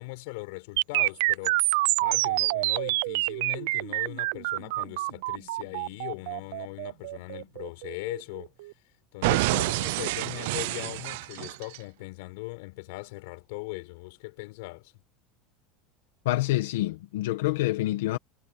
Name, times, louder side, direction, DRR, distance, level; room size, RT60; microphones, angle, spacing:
voice 1, 0.0-8.5 9.1-14.9, left 25 dB, 70° left, 5.7 m, -40 dB
sound 1, 0.8-8.7 9.2-11.8, right 21 dB, 75° right, 0.5 m, -27 dB
voice 2, 16.2-18.2, left 17 dB, 90° left, 1.3 m, -27 dB
supercardioid pair, 150°, 0 cm